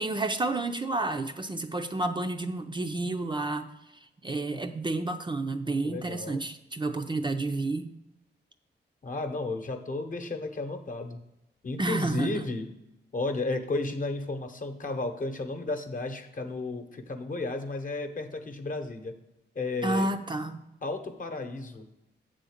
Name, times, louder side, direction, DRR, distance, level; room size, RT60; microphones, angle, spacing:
voice 1, 0.0-3.7 4.2-7.9 11.8-12.4 19.8-20.6, right 2 dB, 25° right, 6 dB, 0.5 m, -30 dB
voice 2, 5.8-6.4 9.0-11.2 11.6-12.7 13.1-19.2 19.5-20.1 20.8-21.9, left 2 dB, 45° left, 6 dB, 0.9 m, -33 dB
7.8 x 3.8 x 6.5 m, 0.91 s
cardioid pair, 80°, 19 cm